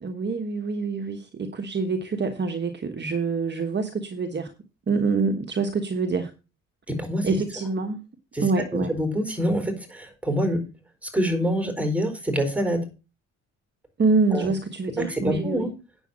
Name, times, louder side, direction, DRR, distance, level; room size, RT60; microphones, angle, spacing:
voice 1, 0.0-4.5 4.9-6.3 7.2-8.0 8.4-8.9 14.0-15.7, right 4 dB, 35° right, 7 dB, 1.3 m, -26 dB
voice 2, 6.9-7.3 8.3-8.5 8.7-10.6 11.0-12.8 14.3-14.5 15.0-15.7, equal, 5° right, 7 dB, 4.3 m, -26 dB
9.2 x 7.2 x 6.1 m, 0.31 s
cardioid pair, 110°, 31 cm